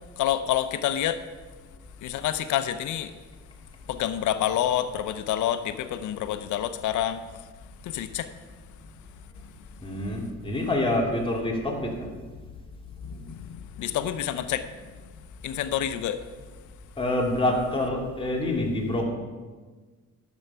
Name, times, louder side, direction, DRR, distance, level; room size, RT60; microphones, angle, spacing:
voice 1, 0.2-1.2 2.0-3.1 3.9-7.2 7.8-8.3 13.0-14.8 15.4-16.2, left 11 dB, 80° left, 0.7 m, -28 dB
voice 2, 9.8-12.1 13.1-13.3 17.0-19.0, left 1 dB, 15° left, 2.4 m, -27 dB
11.0 x 7.2 x 5.6 m
cardioid pair, 90°, 30 cm